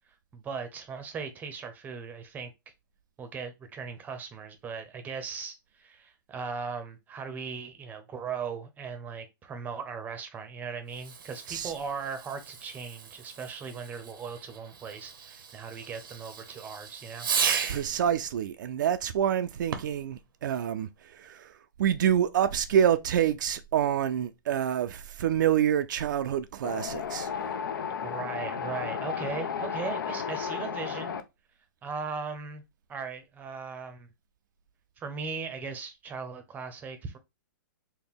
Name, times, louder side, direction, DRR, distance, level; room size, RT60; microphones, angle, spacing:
voice 1, 0.3-2.5 3.2-17.3 28.0-31.2 31.8-32.6 32.9-34.1 35.0-37.2, right 5 dB, 15° right, 0.6 m, -38 dB
Fireworks, 10.9-18.0 19.6-20.1, right 6 dB, 80° right, 0.8 m, -35 dB
voice 2, 17.7-20.9 21.2-21.5 21.8-27.3, right 9 dB, 65° right, 0.4 m, -27 dB
Wind, 26.6-31.2, left 7 dB, 80° left, 0.6 m, -33 dB
4.1 x 2.1 x 3.5 m
hypercardioid pair, 140°, 11 cm